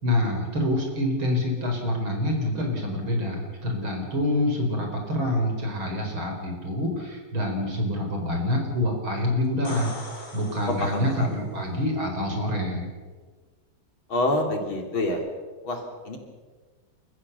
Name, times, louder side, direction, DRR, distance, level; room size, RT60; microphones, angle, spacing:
voice 1, 0.0-9.9 10.3-12.9, left 1 dB, 90° right, 2 dB, 5.4 m, -26 dB
sound 1, 9.5-11.4 15.1-15.2, left 1 dB, 45° left, 3.9 m, -41 dB
voice 2, 10.8-11.4 14.1-15.2 15.6-16.2, left 1 dB, 85° left, 3 dB, 4.1 m, -27 dB
29.5 x 14.5 x 7.1 m, 1.4 s
omnidirectional pair, 2.2 m